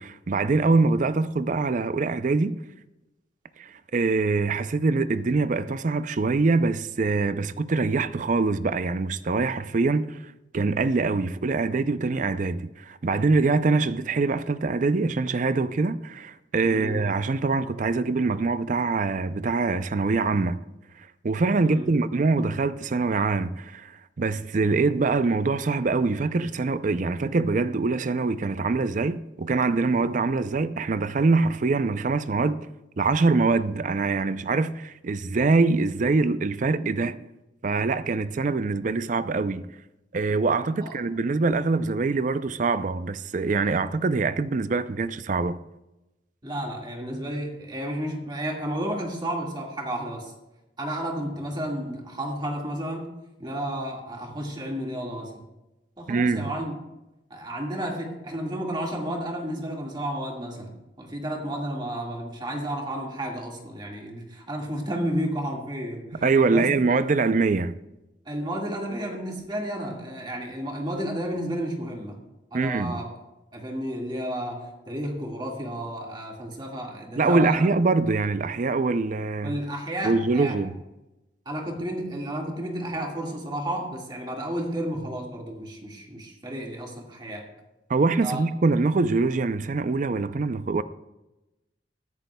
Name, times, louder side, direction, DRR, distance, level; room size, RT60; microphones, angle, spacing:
voice 1, 0.0-2.6 3.6-20.6 21.2-32.7 33.0-37.3 37.6-39.7 40.1-45.6 56.1-56.5 66.2-67.8 72.5-73.0 77.2-79.6 80.0-80.8 87.9-90.8, right 3 dB, 45° right, 0.4 m, -24 dB
voice 2, 16.6-17.1 21.6-21.9 40.8-40.9 46.4-50.3 50.8-55.5 56.0-56.8 57.3-66.8 68.2-72.2 72.5-73.1 73.5-77.7 79.4-80.6 81.4-87.5 88.2-88.4, right 1 dB, 25° right, 1.8 m, -32 dB
21.0 x 10.5 x 2.3 m
head